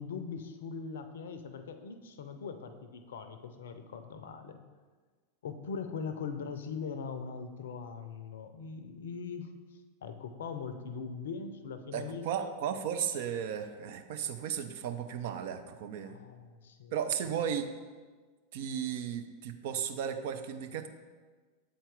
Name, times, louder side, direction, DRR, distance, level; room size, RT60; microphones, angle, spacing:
voice 1, 0.0-4.6 5.4-9.5 10.0-12.6 16.0-17.0 17.2-17.3, left 5 dB, 60° left, 9 dB, 0.5 m, -41 dB
voice 2, 11.9-16.2 16.9-17.7 18.5-20.9, right 8 dB, 50° right, 8 dB, 0.4 m, -35 dB
7.6 x 4.3 x 3.5 m, 1.4 s
figure-of-eight pair, 90°, 0 cm